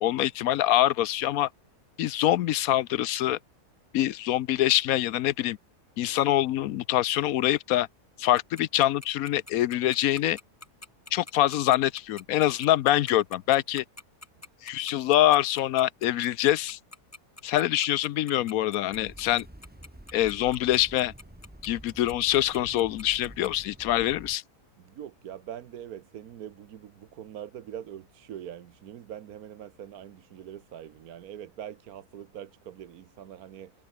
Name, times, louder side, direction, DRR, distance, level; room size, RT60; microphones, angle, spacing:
voice 1, 0.0-1.5 2.0-3.4 3.9-5.6 6.0-7.9 8.2-10.4 11.1-13.8 14.6-16.8 17.4-19.5 20.1-21.1 21.6-24.4, left 13 dB, 70° left, 1.0 m, -24 dB
Tick-tock, 8.4-23.5, left 2 dB, 15° left, 0.5 m, -45 dB
sound 1, 18.9-24.4, right 1 dB, 5° right, 1.8 m, -48 dB
voice 2, 24.8-33.7, right 10 dB, 70° right, 1.4 m, -43 dB
omnidirectional pair, 1.7 m